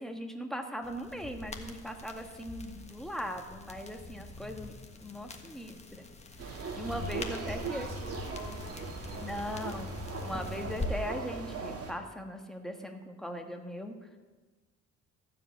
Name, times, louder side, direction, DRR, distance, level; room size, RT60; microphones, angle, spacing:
voice 1, 0.0-4.7 5.0-6.1 6.4-7.9 9.2-9.9 10.2-14.2, equal, ahead, 4 dB, 1.4 m, -39 dB
sound 1, 0.8-10.9, left 3 dB, 20° left, 1.4 m, -43 dB
sound 2, 6.4-11.9, right 4 dB, 50° right, 2.0 m, -40 dB
voice 2, 7.4-9.7, right 2 dB, 35° right, -2 dB, 4.7 m, -46 dB
14.5 x 5.0 x 8.4 m, 1.3 s
cardioid pair, 90°, 30 cm